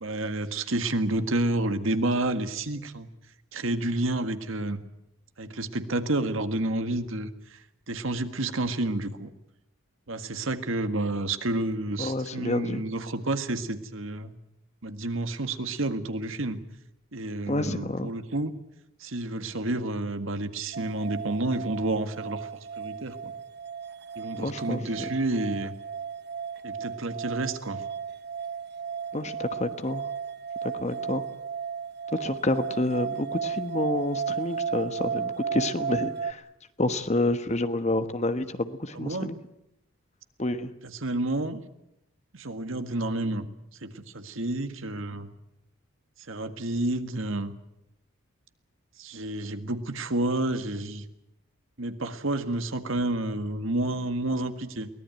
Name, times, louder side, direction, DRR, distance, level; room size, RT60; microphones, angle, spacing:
voice 1, 0.0-3.1 3.5-4.8 5.4-7.6 7.9-9.3 10.1-14.3 14.8-16.6 17.1-18.5 19.0-22.5 22.8-23.3 24.2-25.8 26.6-27.8 39.0-39.3 40.8-41.6 42.3-43.5 43.8-45.3 46.3-47.5 49.0-51.1 51.8-54.9, right 2 dB, 70° right, 9 dB, 1.7 m, -30 dB
voice 2, 12.0-12.8 17.5-18.1 24.4-24.8 29.1-30.1 30.6-31.2 32.1-36.4 36.8-39.4 40.4-40.7, left 2 dB, 30° left, 10 dB, 1.2 m, -29 dB
sound 1, 20.7-36.3, right 6 dB, 50° right, 0.9 m, -34 dB
23.0 x 18.5 x 9.2 m, 0.86 s
head